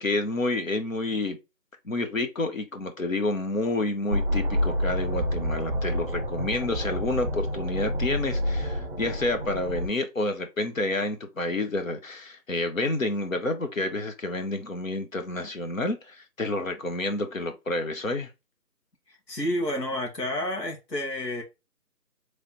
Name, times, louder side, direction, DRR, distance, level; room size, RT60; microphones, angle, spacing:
voice 1, 0.0-1.4 1.8-18.3, left 2 dB, 55° left, 0.8 m, -29 dB
sound 1, 4.1-9.9, equal, 35° right, 1.1 m, -28 dB
voice 2, 19.1-21.4, left 1 dB, 85° left, 1.7 m, -30 dB
3.8 x 3.3 x 2.9 m
figure-of-eight pair, 170°, 49 cm